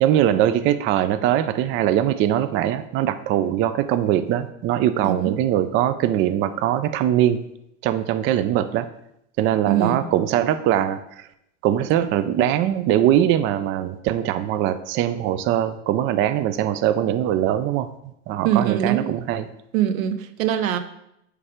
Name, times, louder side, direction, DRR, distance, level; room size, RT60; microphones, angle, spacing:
voice 1, 0.0-7.4 7.8-8.9 9.4-11.3 11.6-19.4, right 11 dB, 30° right, 10 dB, 0.4 m, -21 dB
voice 2, 5.0-5.4 9.7-10.1 18.4-19.2 19.7-20.8, right 10 dB, 85° right, 10 dB, 0.9 m, -22 dB
9.6 x 3.3 x 5.0 m, 0.79 s
supercardioid pair, 120°, 40 cm